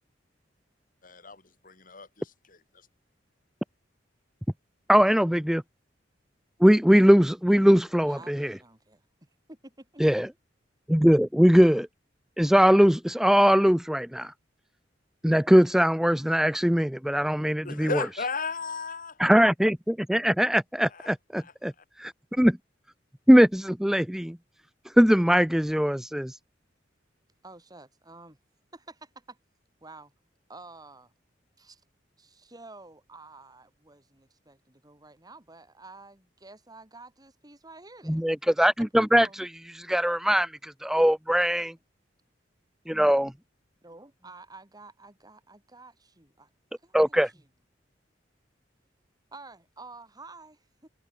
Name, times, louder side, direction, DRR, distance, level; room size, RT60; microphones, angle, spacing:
voice 1, 1.0-2.9 17.6-19.2 20.9-21.1 21.4-21.8, left 4 dB, 50° left, 7.9 m, -36 dB
voice 2, 4.9-5.6 6.6-8.5 10.0-10.3 10.9-11.9 12.4-14.3 15.2-17.9 19.2-21.7 22.0-22.6 23.3-24.4 25.0-26.4 38.1-39.5 39.8-41.7 42.9-43.3 46.9-47.3, equal, 5° right, 0.5 m, -21 dB
voice 3, 8.0-10.1 27.4-28.4 28.7-29.4 29.8-30.1 30.5-31.1 31.6-31.8 32.2-38.2 39.0-39.4 43.8-46.5 46.8-47.4 49.3-50.9, right 3 dB, 20° right, 5.0 m, -50 dB
head